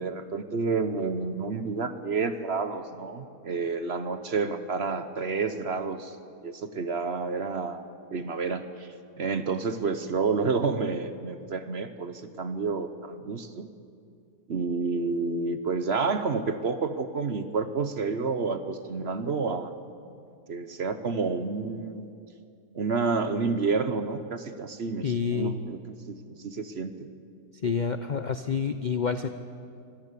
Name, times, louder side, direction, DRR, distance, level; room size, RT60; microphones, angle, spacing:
voice 1, 0.0-6.1 6.4-7.8 8.1-8.9 9.2-13.7 14.5-19.7 20.5-22.1 22.7-27.1, right 4 dB, 45° right, 10 dB, 1.0 m, -29 dB
voice 2, 25.0-25.6 27.6-29.3, left 6 dB, 65° left, 9 dB, 0.4 m, -28 dB
24.5 x 14.5 x 8.3 m, 2.4 s
omnidirectional pair, 1.8 m